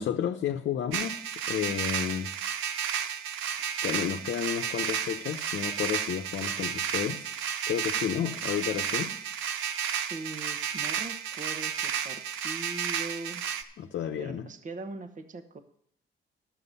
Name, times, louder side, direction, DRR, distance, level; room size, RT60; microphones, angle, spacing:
voice 1, 0.0-2.3 3.8-7.3 7.7-9.1 13.8-14.5, left 9 dB, 65° left, 0.8 m, -31 dB
sound 1, 0.9-13.6, right 8 dB, 85° right, 0.8 m, -32 dB
voice 2, 10.1-13.4 14.2-15.6, right 3 dB, 40° right, 1.1 m, -41 dB
11.5 x 7.7 x 5.5 m
cardioid pair, 90°, 20 cm